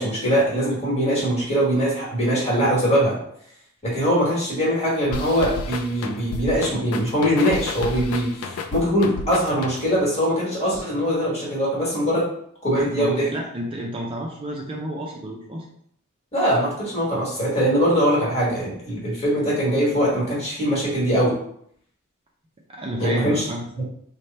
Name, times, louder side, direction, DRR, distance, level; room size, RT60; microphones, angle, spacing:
voice 1, 0.0-3.2 3.8-12.3 12.6-13.3 16.3-21.3 23.0-23.4 23.8-23.9, equal, 30° left, -5 dB, 1.4 m, -22 dB
sound 1, 5.1-10.1, left 3 dB, 90° left, 0.4 m, -32 dB
voice 2, 12.8-15.7 22.7-23.6, right 1 dB, 25° right, -1 dB, 0.4 m, -31 dB
3.2 x 2.1 x 4.0 m, 0.67 s
head